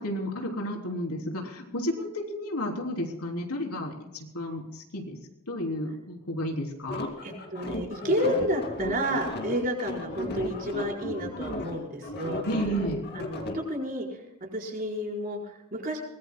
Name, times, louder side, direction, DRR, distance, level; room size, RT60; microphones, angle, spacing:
voice 1, 0.0-5.2 5.5-7.1 12.5-13.0, equal, 80° left, 1 dB, 3.5 m, -32 dB
sound 1, 6.9-13.6, left 1 dB, 45° left, 2.5 m, -35 dB
voice 2, 7.2-12.4 13.1-16.0, equal, 40° right, -1 dB, 4.6 m, -31 dB
23.5 x 20.0 x 2.2 m, 0.91 s
head